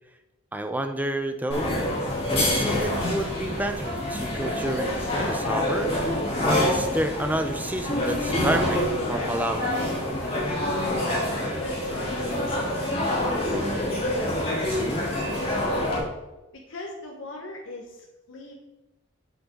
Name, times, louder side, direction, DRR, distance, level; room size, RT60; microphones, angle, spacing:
voice 1, 0.5-1.7 2.3-4.9 5.2-5.9 6.4-8.8 9.1-9.8 14.8-15.1, right 1 dB, 10° right, 7 dB, 0.6 m, -29 dB
sound 1, 1.5-16.0, left 1 dB, 30° left, 3.3 m, -26 dB
voice 2, 10.8-15.8 16.7-18.5, left 2 dB, 65° left, -1 dB, 1.4 m, -40 dB
8.5 x 8.0 x 3.9 m, 1.0 s
head